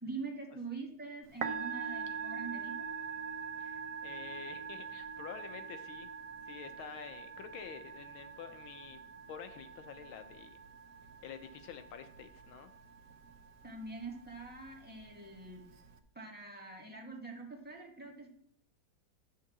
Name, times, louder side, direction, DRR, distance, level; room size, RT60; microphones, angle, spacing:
voice 1, 0.0-2.7 13.6-15.6 16.1-18.3, right 3 dB, 5° right, -1 dB, 1.6 m, -44 dB
Musical instrument, 1.2-16.0, right 6 dB, 65° right, 0.8 m, -44 dB
voice 2, 3.6-6.1 6.5-9.0 9.3-10.6 11.2-12.7, left 8 dB, 85° left, 8 dB, 1.6 m, -48 dB
11.0 x 3.8 x 7.2 m, 0.66 s
omnidirectional pair, 2.2 m